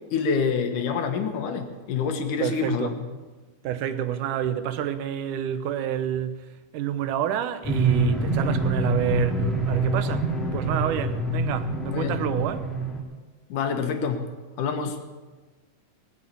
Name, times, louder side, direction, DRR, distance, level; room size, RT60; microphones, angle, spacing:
voice 1, 0.1-2.9 11.9-12.2 13.5-14.3 14.6-15.0, left 5 dB, 85° left, 2.9 m, -26 dB
voice 2, 2.4-3.0 3.6-12.7, right 10 dB, 85° right, 2.4 m, -29 dB
sound 1, 7.6-13.0, right 1 dB, ahead, 2.2 m, -26 dB
19.5 x 8.3 x 8.5 m
omnidirectional pair, 3.6 m